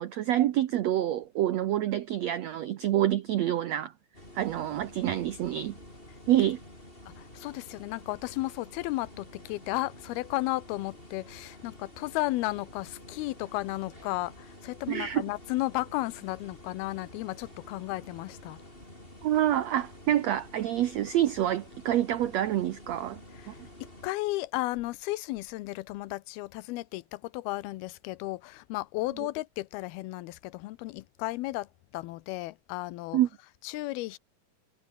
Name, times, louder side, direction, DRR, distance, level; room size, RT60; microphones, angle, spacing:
voice 1, 0.0-3.9 4.3-5.8 6.3-6.6 14.9-15.2 19.2-23.2 23.5-23.6 33.1-33.3, right 12 dB, 85° right, 1.5 m, -27 dB
sound 1, 4.1-24.1, left 1 dB, 15° left, 8.1 m, -50 dB
voice 2, 7.1-18.6 23.3-23.5 23.8-31.7 31.9-34.2, left 19 dB, 90° left, 2.7 m, -34 dB
omnidirectional pair, 4.3 m